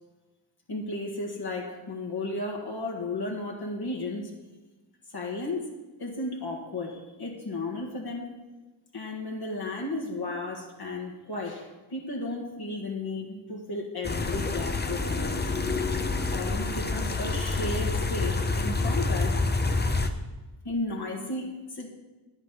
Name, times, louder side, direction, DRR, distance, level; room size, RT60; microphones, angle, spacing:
voice 1, 0.7-4.3 5.1-5.7 6.0-8.3 8.9-15.4 16.3-19.4 20.6-21.9, left 2 dB, 50° left, -2 dB, 1.9 m, -34 dB
sound 1, 14.0-20.1, left 3 dB, 20° left, 0.8 m, -27 dB
9.6 x 8.1 x 4.1 m, 1.2 s
cardioid pair, 50°, 48 cm